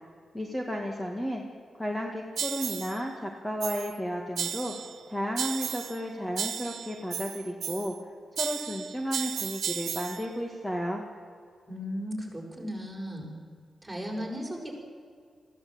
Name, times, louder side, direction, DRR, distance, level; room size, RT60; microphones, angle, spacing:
voice 1, 0.3-1.4 1.8-4.7 5.1-7.9 8.3-11.0, equal, 10° left, 1 dB, 2.1 m, -33 dB
sound 1, 2.4-3.0 3.6-4.0 4.4-5.0 5.4-6.0 6.4-8.0 8.4-10.3, right 8 dB, 85° right, 0.8 m, -34 dB
voice 2, 11.7-13.3 13.8-14.7, equal, 10° right, -1 dB, 5.9 m, -36 dB
21.5 x 15.5 x 8.9 m, 2.1 s
wide cardioid pair, 105°, 0 cm